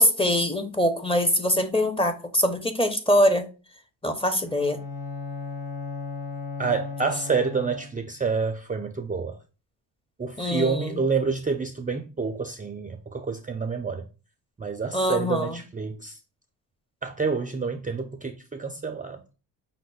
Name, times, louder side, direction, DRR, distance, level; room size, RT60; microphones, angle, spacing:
voice 1, 0.0-3.5 4.0-4.8 10.4-10.9 14.9-15.5, equal, 15° left, 0.7 m, -23 dB
Bowed string instrument, 4.5-8.2, left 4 dB, 70° left, 1.7 m, -36 dB
voice 2, 6.6-9.4 10.2-14.1 14.6-16.2 17.0-19.2, right 4 dB, 20° right, 0.4 m, -28 dB
5.9 x 2.1 x 3.9 m
cardioid pair, 75°, 40 cm